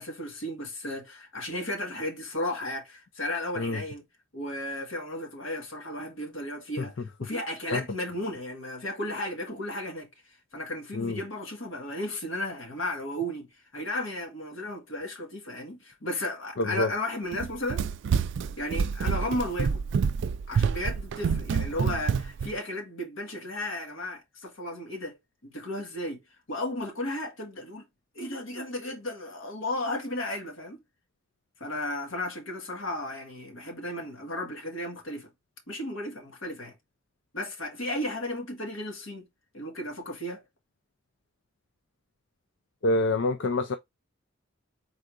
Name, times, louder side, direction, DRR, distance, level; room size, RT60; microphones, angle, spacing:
voice 1, 0.0-4.0 4.3-10.1 10.5-13.5 13.7-17.8 18.6-19.8 20.5-25.2 25.4-26.2 26.5-27.9 28.2-30.8 31.6-35.3 35.7-36.8 37.3-39.3 39.5-40.4, left 1 dB, 85° left, 1.7 m, -34 dB
voice 2, 16.6-16.9 42.8-43.7, left 2 dB, 65° left, 0.5 m, -26 dB
Run, 17.3-22.5, right 6 dB, 65° right, 0.3 m, -27 dB
4.5 x 3.9 x 2.5 m
head